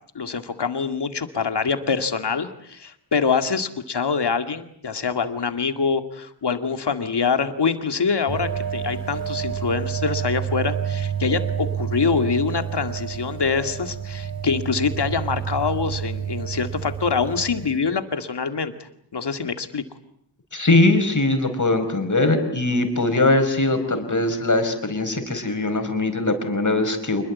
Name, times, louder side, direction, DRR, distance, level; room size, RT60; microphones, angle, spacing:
voice 1, 0.1-19.8, left 5 dB, 65° left, 8 dB, 2.3 m, -25 dB
sound 1, 8.3-17.8, right 8 dB, 50° right, 5.6 m, -29 dB
voice 2, 20.5-27.2, left 2 dB, 40° left, 7 dB, 5.2 m, -21 dB
27.0 x 21.5 x 8.5 m, 0.70 s
wide cardioid pair, 65°, 44 cm